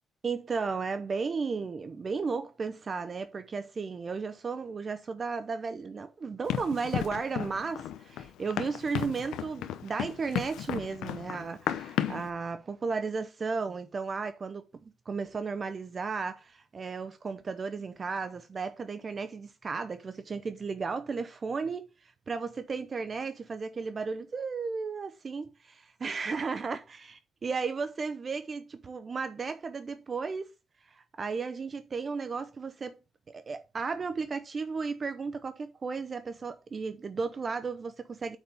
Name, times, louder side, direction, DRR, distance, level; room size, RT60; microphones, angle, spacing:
voice 1, 0.2-14.6 15.1-25.5 26.0-30.5 30.9-33.0 33.3-38.4, right 4 dB, 40° right, 0.7 m, -34 dB
Run, 6.5-12.3, left 11 dB, 85° left, 0.8 m, -34 dB
8.0 x 6.2 x 3.5 m
cardioid pair, 90°, 0 cm